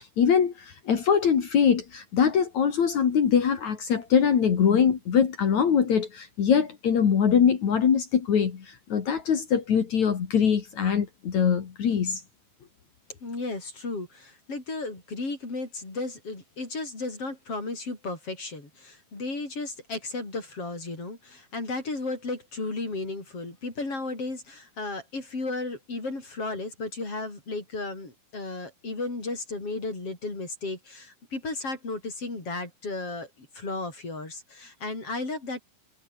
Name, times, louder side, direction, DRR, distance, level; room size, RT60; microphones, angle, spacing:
voice 1, 0.0-12.2, left 7 dB, 55° left, 3.5 m, -23 dB
voice 2, 13.2-35.6, left 3 dB, 40° left, 7.9 m, -34 dB
omnidirectional pair, 4.1 m